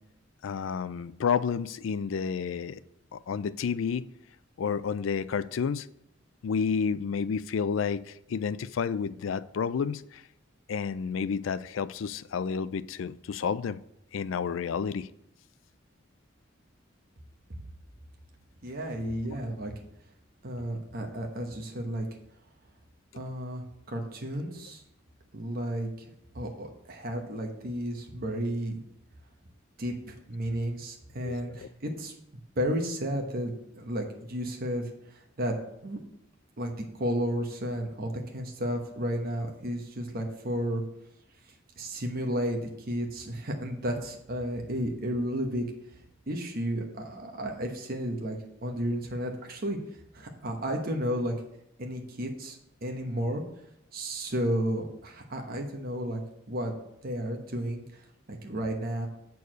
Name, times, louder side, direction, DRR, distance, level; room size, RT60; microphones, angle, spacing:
voice 1, 0.4-2.8 3.1-4.1 4.6-5.9 6.4-10.2 10.7-13.8 14.1-15.1 19.3-19.4 31.2-31.5, left 6 dB, 85° left, 0.4 m, -30 dB
voice 2, 18.6-19.7 20.4-22.1 23.1-24.8 25.3-26.1 26.3-28.8 29.8-32.1 32.6-35.5 35.8-36.0 36.6-40.8 41.8-45.6 46.3-48.4 48.6-49.8 50.1-51.3 51.8-53.4 53.9-56.2 56.5-56.7 57.0-58.0 58.3-59.1, equal, 50° right, 1.0 m, -32 dB
8.1 x 4.6 x 6.2 m
head